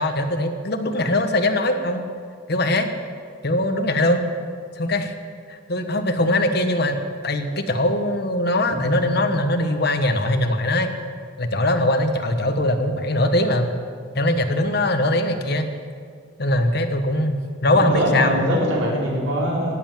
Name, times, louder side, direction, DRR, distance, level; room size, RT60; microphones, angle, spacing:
voice 1, 0.0-2.0 2.5-2.9 3.4-4.2 4.8-5.1 5.5-7.0 7.2-10.9 11.4-13.7 14.1-15.7 16.4-18.3, left 1 dB, 55° left, 7 dB, 1.3 m, -21 dB
voice 2, 17.7-19.7, equal, 75° right, -4 dB, 4.7 m, -22 dB
18.0 x 8.1 x 9.1 m, 2.1 s
head